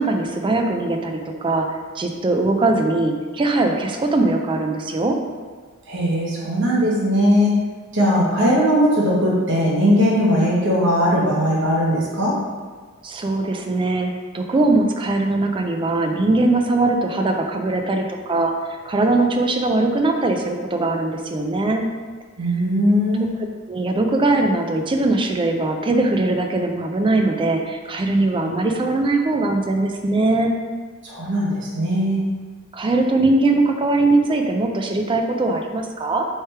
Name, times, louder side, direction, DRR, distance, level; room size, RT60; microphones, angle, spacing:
voice 1, 0.0-1.7 2.0-5.2 13.0-21.9 23.7-30.5 32.7-36.3, right 2 dB, 25° right, 4 dB, 0.3 m, -20 dB
voice 2, 5.9-7.6 7.9-12.3 22.4-23.3 31.0-32.2, equal, 60° right, -5 dB, 0.9 m, -19 dB
3.3 x 3.2 x 4.4 m, 1.5 s
head